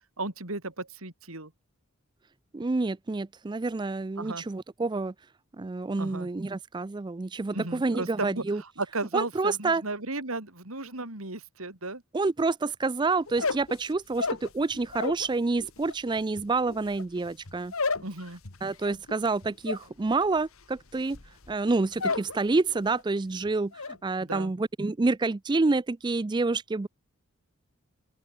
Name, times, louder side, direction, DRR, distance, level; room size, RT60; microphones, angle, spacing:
voice 1, 0.2-1.5 4.2-4.4 6.0-6.3 7.5-12.0 18.0-18.4 24.2-24.5, right 2 dB, 80° right, 4.2 m, -35 dB
voice 2, 2.5-5.1 5.6-8.6 9.1-9.8 12.1-17.7 18.6-21.2 21.5-26.9, right 3 dB, 20° right, 0.4 m, -28 dB
sound 1, 13.3-15.3 15.6-22.4 22.7-23.2 23.5-24.0, left 4 dB, 75° left, 1.9 m, -33 dB
open air
head